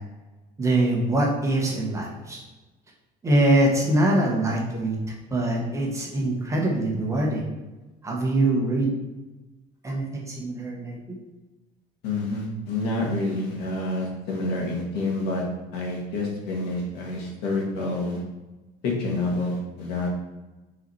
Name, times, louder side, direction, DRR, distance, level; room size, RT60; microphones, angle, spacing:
voice 1, 0.6-2.4 3.2-5.0 5.3-7.4 8.0-8.9 9.8-11.0, right 1 dB, 15° right, -2 dB, 1.1 m, -23 dB
voice 2, 12.0-15.4 15.7-18.2 18.8-20.1, left 2 dB, 65° left, -2 dB, 1.9 m, -28 dB
5.7 x 4.1 x 4.5 m, 1.1 s
cardioid pair, 155°, 18 cm